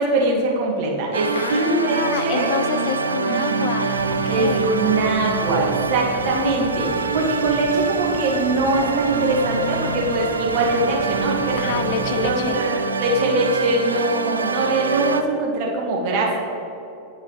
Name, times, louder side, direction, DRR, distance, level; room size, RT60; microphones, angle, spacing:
voice 1, 0.0-2.5 3.2-3.7 4.3-11.7 12.2-16.4, right 2 dB, 45° right, -1 dB, 1.2 m, -22 dB
sound 1, 1.1-15.2, right 4 dB, 75° right, 0.3 m, -25 dB
voice 2, 1.3-4.8 11.6-12.6, left 7 dB, 45° left, 9 dB, 0.4 m, -28 dB
sound 2, 3.9-12.5, right 1 dB, 20° right, 0.8 m, -37 dB
9.6 x 4.6 x 3.0 m, 2.9 s
figure-of-eight pair, 90°, 0 cm